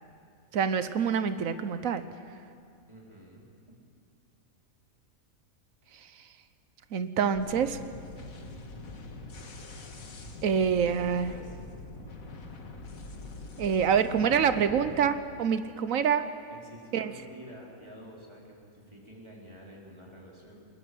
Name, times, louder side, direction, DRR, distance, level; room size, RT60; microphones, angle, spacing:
voice 1, 0.5-2.0 6.9-7.8 10.4-11.3 13.6-16.3 16.9-17.1, right 7 dB, 75° right, 12 dB, 1.2 m, -26 dB
voice 2, 2.9-3.8 10.9-11.6 16.5-20.7, right 1 dB, 20° right, -3 dB, 4.0 m, -49 dB
sound 1, 7.3-15.0, left 2 dB, 75° left, 2.0 m, -44 dB
21.0 x 20.5 x 7.7 m, 2.4 s
omnidirectional pair, 1.5 m